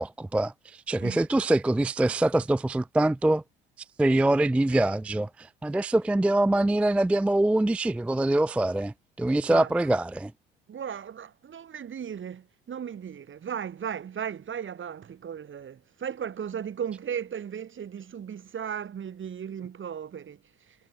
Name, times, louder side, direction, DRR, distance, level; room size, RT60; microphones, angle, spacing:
voice 1, 0.0-3.4 4.0-10.3, right 1 dB, 5° right, 0.4 m, -24 dB
voice 2, 9.5-9.8 10.7-20.8, right 8 dB, 40° right, 5.9 m, -36 dB
hypercardioid pair, 60°, 31 cm